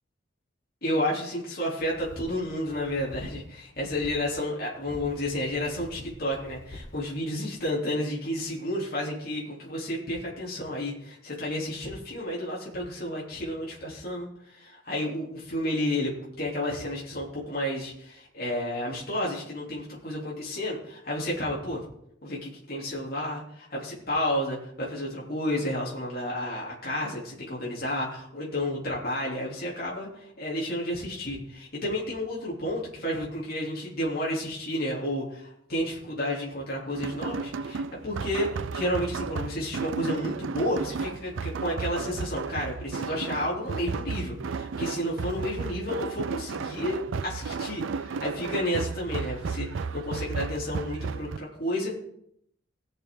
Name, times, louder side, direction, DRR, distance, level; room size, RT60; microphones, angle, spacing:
voice 1, 0.8-21.8 22.2-51.9, left 1 dB, 50° left, -4 dB, 3.3 m, -31 dB
sound 1, 1.8-3.5 3.8-4.2 4.7-7.0, left 1 dB, 90° left, 1.4 m, -46 dB
sound 2, 36.9-51.4, right 5 dB, 80° right, 0.4 m, -34 dB
19.0 x 6.6 x 3.9 m, 0.73 s
head